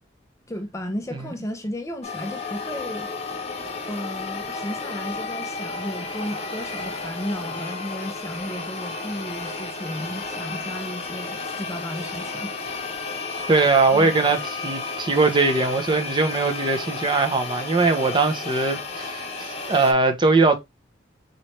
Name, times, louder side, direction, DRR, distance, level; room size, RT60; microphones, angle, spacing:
voice 1, 0.5-3.1 3.8-12.5 13.9-14.1, equal, 15° left, 0.5 m, -34 dB
sound 1, 2.0-19.9, left 4 dB, 35° left, 1.0 m, -32 dB
voice 2, 13.5-20.6, right 3 dB, 25° right, 0.6 m, -21 dB
4.1 x 3.1 x 3.1 m
head